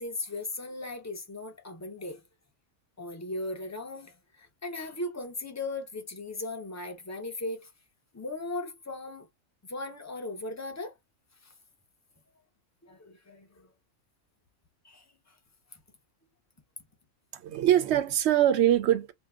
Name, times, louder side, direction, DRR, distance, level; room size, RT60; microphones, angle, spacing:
voice 1, 0.0-2.2 3.0-7.7 8.1-9.3 9.7-10.9 11.4-11.5 12.8-13.7 14.8-15.3, left 2 dB, 25° left, 0.4 m, -37 dB
voice 2, 17.3-19.1, right 11 dB, 65° right, 0.8 m, -23 dB
2.7 x 2.1 x 3.5 m
omnidirectional pair, 1.4 m